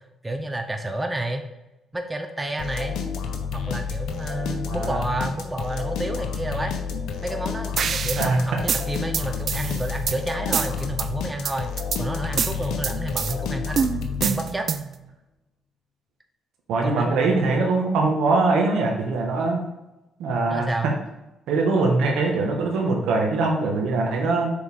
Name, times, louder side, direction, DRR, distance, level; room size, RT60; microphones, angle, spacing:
voice 1, 0.2-1.5 1.9-3.0 3.5-6.7 7.2-11.7 12.0-13.9 14.2-14.7 16.8-17.3 20.5-20.9, right 1 dB, 15° right, 5 dB, 0.7 m, -30 dB
sound 1, 2.6-14.8, left 6 dB, 80° left, 0.8 m, -30 dB
voice 2, 4.7-5.0 8.2-8.4 16.7-19.6 20.2-20.7 21.5-24.5, right 3 dB, 85° right, 1 dB, 1.4 m, -22 dB
sound 2, 7.8-8.3 8.7-10.2 10.5-11.1 11.5-12.0 12.4-13.4 13.8-15.0, right 7 dB, 55° right, 0.4 m, -26 dB
6.4 x 4.5 x 3.6 m, 0.95 s
cardioid pair, 90°, 0 cm